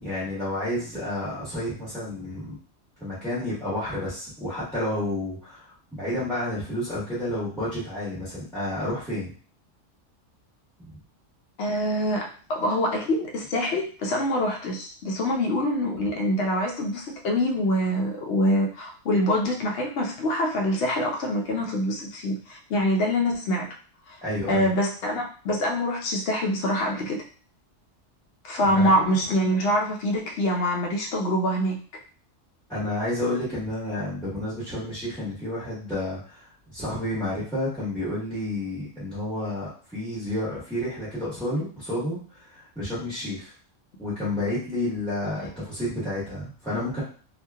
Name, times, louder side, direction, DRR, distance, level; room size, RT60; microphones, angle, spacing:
voice 1, 0.0-2.6 3.0-9.3 24.2-24.7 28.6-28.9 32.7-43.5 44.0-47.0, left 1 dB, ahead, -12 dB, 1.2 m, -30 dB
voice 2, 11.6-23.7 24.1-24.2 24.5-27.2 28.4-31.8 45.4-45.5, equal, 65° left, 0 dB, 0.8 m, -25 dB
2.8 x 2.5 x 2.3 m, 0.41 s
omnidirectional pair, 1.3 m